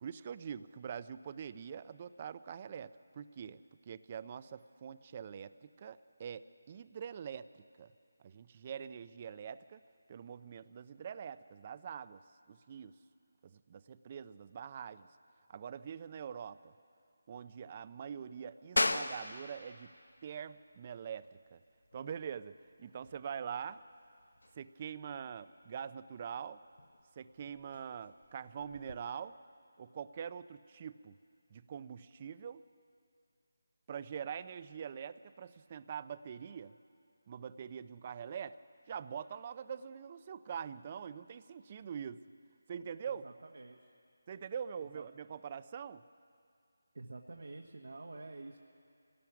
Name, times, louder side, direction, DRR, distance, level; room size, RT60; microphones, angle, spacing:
voice 1, 0.0-7.5 7.8-7.9 8.2-9.8 10.1-12.2 12.5-12.9 13.4-15.1 15.5-16.7 17.3-19.9 20.2-21.6 21.9-23.8 24.6-26.6 27.2-29.4 29.8-31.1 31.5-32.6 33.9-36.7 37.3-38.6 38.9-42.2 42.7-43.2 44.3-46.0, right 7 dB, 30° right, 15 dB, 0.5 m, -44 dB
sound 1, 18.8-29.0, left 2 dB, 85° left, 1.0 m, -41 dB
voice 2, 43.0-43.9 44.8-45.0 46.9-48.6, right 2 dB, 75° right, 1 dB, 1.4 m, -49 dB
25.5 x 17.5 x 5.9 m, 2.4 s
figure-of-eight pair, 170°, 0 cm